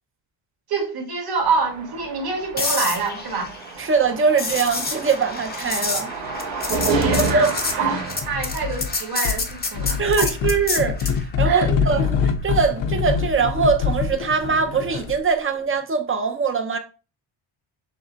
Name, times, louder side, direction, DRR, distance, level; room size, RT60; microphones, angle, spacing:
voice 1, 0.7-3.5 7.0-7.5 7.8-10.3 11.4-11.7, right 4 dB, 50° right, 1.7 m, -26 dB
sound 1, 1.4-9.1, right 4 dB, 80° right, 1.7 m, -29 dB
sound 2, 2.6-11.2 15.4-15.6, left 4 dB, 20° left, 0.6 m, -29 dB
voice 2, 3.8-6.1 7.1-7.5 7.9-8.0 10.0-16.8, right 5 dB, 25° right, 0.5 m, -22 dB
sound 3, 8.2-8.9 9.2-15.3, left 6 dB, 65° left, 0.7 m, -25 dB
6.3 x 2.1 x 3.9 m
cardioid pair, 165°, 49 cm